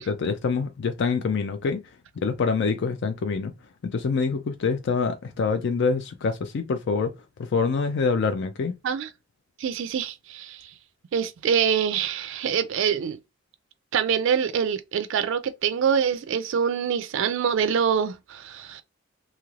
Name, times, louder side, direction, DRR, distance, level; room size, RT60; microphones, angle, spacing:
voice 1, 0.0-1.8 2.2-3.5 3.8-7.1 7.4-8.8, left 4 dB, 60° left, 0.4 m, -25 dB
voice 2, 9.6-10.7 11.1-13.2 13.9-18.8, right 7 dB, 70° right, 0.4 m, -25 dB
3.2 x 2.9 x 2.3 m
head